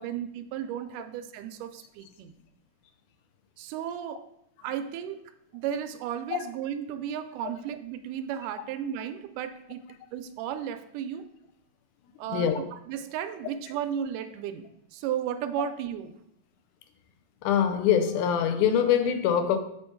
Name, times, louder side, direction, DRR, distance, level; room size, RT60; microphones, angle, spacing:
voice 1, 0.0-2.3 3.6-4.3 4.6-5.2 5.5-9.8 10.1-11.3 12.2-14.7 14.9-16.2, right 9 dB, 85° right, 2.1 m, -34 dB
voice 2, 17.4-19.6, left 8 dB, 80° left, 2.1 m, -23 dB
7.7 x 4.4 x 4.5 m
omnidirectional pair, 3.6 m